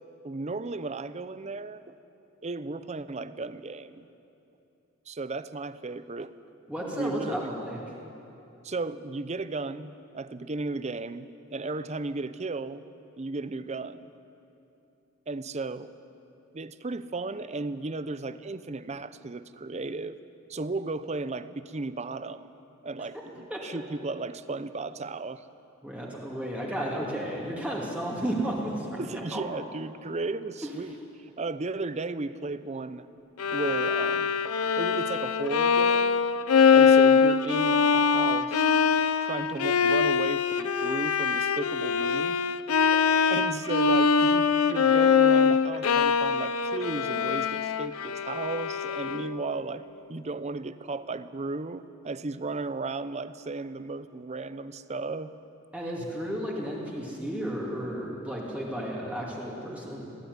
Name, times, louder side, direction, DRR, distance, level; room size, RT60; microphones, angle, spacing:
voice 1, 0.2-1.8 2.4-4.1 5.1-6.3 6.9-7.5 8.6-12.8 13.2-14.1 15.3-15.9 16.5-20.2 20.5-22.5 22.8-25.4 29.0-33.1 33.5-34.3 34.8-36.2 36.7-38.7 39.2-42.4 43.3-55.3, right 3 dB, 30° right, 14 dB, 0.6 m, -35 dB
voice 2, 6.7-7.8 23.5-23.6 25.8-29.4 30.6-30.7 42.7-42.8 55.7-60.1, right 1 dB, 5° right, -4 dB, 2.6 m, -33 dB
Bowed string instrument, 33.4-49.5, left 6 dB, 85° left, 0.6 m, -23 dB
18.5 x 15.0 x 9.5 m, 2.8 s
head